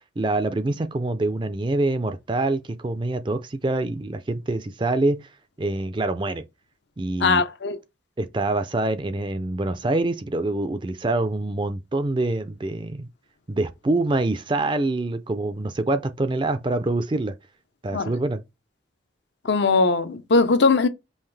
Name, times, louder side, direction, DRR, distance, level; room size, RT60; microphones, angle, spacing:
voice 1, 0.2-5.3 5.6-6.4 7.0-7.4 8.2-13.1 13.5-17.3 17.8-18.4, right 2 dB, 25° right, 0.4 m, -25 dB
voice 2, 7.2-7.8 17.9-18.1 19.4-20.9, left 4 dB, 65° left, 0.6 m, -20 dB
5.6 x 2.5 x 3.3 m
head